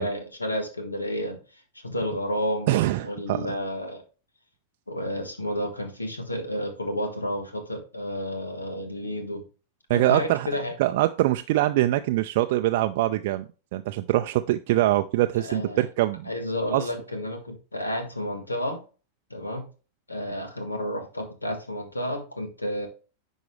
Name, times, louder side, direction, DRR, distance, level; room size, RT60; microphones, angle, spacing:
voice 1, 0.0-2.7 3.0-4.0 4.9-9.4 9.9-10.7 15.4-15.9 16.3-18.8 19.3-19.7 20.1-22.9, left 1 dB, 80° left, 1.6 m, -31 dB
voice 2, 2.7-3.5 9.9-10.5 10.8-13.4 13.7-16.3 16.7-16.9, right 15 dB, 50° right, 0.4 m, -23 dB
10.5 x 4.7 x 3.2 m
figure-of-eight pair, 90°, 0 cm